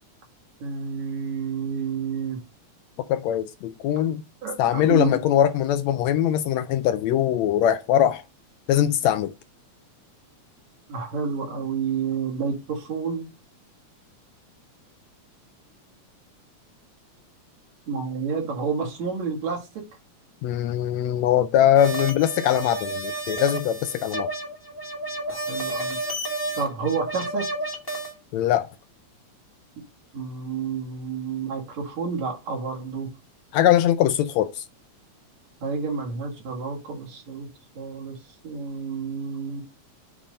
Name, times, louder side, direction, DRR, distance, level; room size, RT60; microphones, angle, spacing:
voice 1, 0.6-2.4 4.4-5.2 10.9-13.3 17.9-19.8 25.3-26.0 26.6-27.5 30.1-33.1 35.6-37.5 37.7-38.2 38.4-39.6, right 5 dB, 70° right, 3.1 m, -29 dB
voice 2, 3.1-4.2 4.6-8.2 8.7-9.3 20.4-24.3 28.3-28.7 33.5-34.7, left 11 dB, 80° left, 1.7 m, -21 dB
sound 1, 21.7-28.1, right 1 dB, 10° left, 1.0 m, -31 dB
7.2 x 3.5 x 5.1 m
omnidirectional pair, 3.4 m